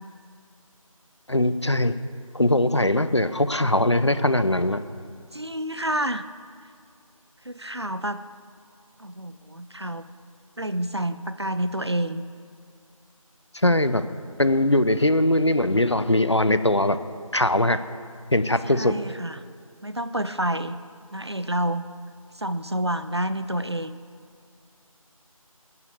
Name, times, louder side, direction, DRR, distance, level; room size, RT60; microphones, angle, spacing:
voice 1, 1.3-2.0 2.3-4.8 13.5-14.0 14.4-17.0 17.3-17.8 18.3-19.0, left 1 dB, 50° left, 12 dB, 0.6 m, -21 dB
voice 2, 5.3-6.3 7.4-8.2 9.0-10.1 10.6-12.2 18.7-19.4 19.8-20.8 21.1-21.9 22.3-24.0, right 1 dB, 50° right, 12 dB, 0.6 m, -28 dB
11.5 x 9.8 x 8.3 m, 2.2 s
figure-of-eight pair, 180°, 18 cm